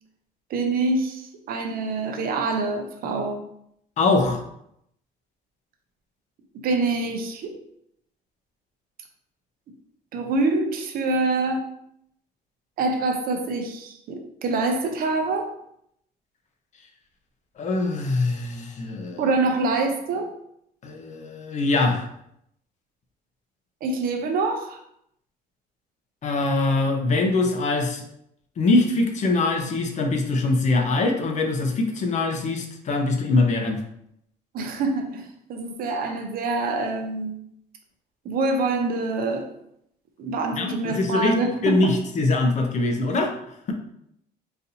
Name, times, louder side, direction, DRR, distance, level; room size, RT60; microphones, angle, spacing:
voice 1, 0.5-3.4 6.6-7.5 10.1-11.7 12.8-15.5 19.2-20.3 23.8-24.8 34.5-37.4 38.2-39.5 40.2-41.9, right 3 dB, 60° right, 5 dB, 0.6 m, -25 dB
voice 2, 4.0-4.4 17.6-19.2 20.8-22.0 26.2-28.0 28.6-33.8 40.5-41.3 41.6-43.3, left 2 dB, 45° left, 4 dB, 0.6 m, -23 dB
4.0 x 2.6 x 2.7 m, 0.74 s
cardioid pair, 110°, 17 cm